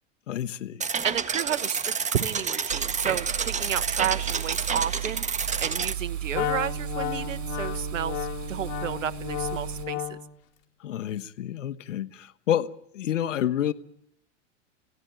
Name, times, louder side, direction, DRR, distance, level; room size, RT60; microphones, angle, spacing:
voice 1, 0.3-0.8 10.8-13.7, left 10 dB, 80° left, 1.3 m, -29 dB
sound 1, 0.8-5.9, right 6 dB, 20° right, 1.6 m, -29 dB
voice 2, 1.0-5.2 5.6-10.2, right 9 dB, 90° right, 1.2 m, -31 dB
sound 2, 2.7-9.9, right 10 dB, 65° right, 7.0 m, -35 dB
Wind instrument woodwind instrument, 6.3-10.4, left 15 dB, 55° left, 4.3 m, -33 dB
28.0 x 17.0 x 9.1 m
hypercardioid pair, 100°, 37 cm